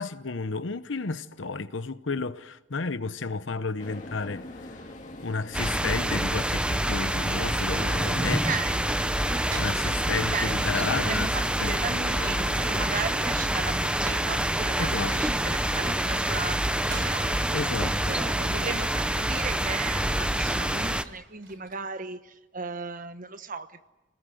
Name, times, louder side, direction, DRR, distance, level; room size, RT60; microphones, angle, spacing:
voice 1, 0.0-4.8 5.2-8.4 9.6-11.3 11.6-11.8 12.2-12.5 14.8-15.2 17.5-18.2, left 4 dB, 80° left, 1.0 m, -32 dB
sound 1, 3.8-12.9, left 1 dB, 45° left, 2.3 m, -43 dB
sound 2, 5.5-21.0, right 1 dB, 5° right, 0.8 m, -27 dB
voice 2, 8.2-8.8 10.3-17.7 18.1-23.9, right 5 dB, 45° right, 1.2 m, -36 dB
sound 3, 9.4-11.6 13.3-21.9, right 2 dB, 70° right, 4.2 m, -46 dB
26.5 x 20.0 x 7.8 m
head